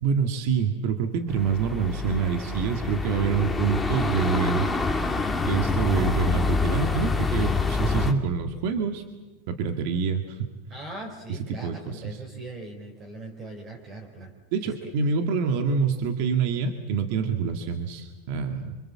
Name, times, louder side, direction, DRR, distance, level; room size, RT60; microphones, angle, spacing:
voice 1, 0.0-4.7 5.5-9.0 9.5-10.5 11.3-12.2 14.5-18.7, right 6 dB, 60° right, 6 dB, 2.0 m, -26 dB
sound 1, 1.3-8.1, left 3 dB, 5° left, 1.8 m, -26 dB
voice 2, 10.7-14.3 14.6-14.9, right 2 dB, 30° right, 1 dB, 3.9 m, -40 dB
26.0 x 24.0 x 7.5 m, 1.3 s
supercardioid pair, 140°, 0 cm